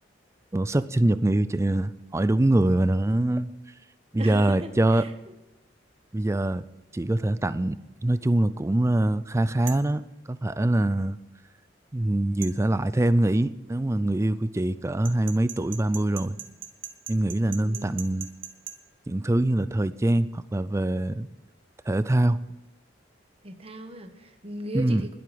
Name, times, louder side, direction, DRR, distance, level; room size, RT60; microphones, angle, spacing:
voice 1, 0.5-3.5 4.1-5.1 6.1-6.6 6.9-10.0 10.3-11.2 11.9-16.4 17.1-18.3 19.1-21.3 21.9-22.4 24.7-25.1, right 1 dB, 15° right, 15 dB, 0.4 m, -24 dB
voice 2, 4.1-5.1 17.6-18.0 23.4-25.2, right 1 dB, 30° right, 7 dB, 1.2 m, -37 dB
sound 1, 9.7-9.9 12.4-12.6 15.0-18.8, right 9 dB, 85° right, 1.2 m, -39 dB
20.5 x 7.9 x 5.1 m, 0.94 s
head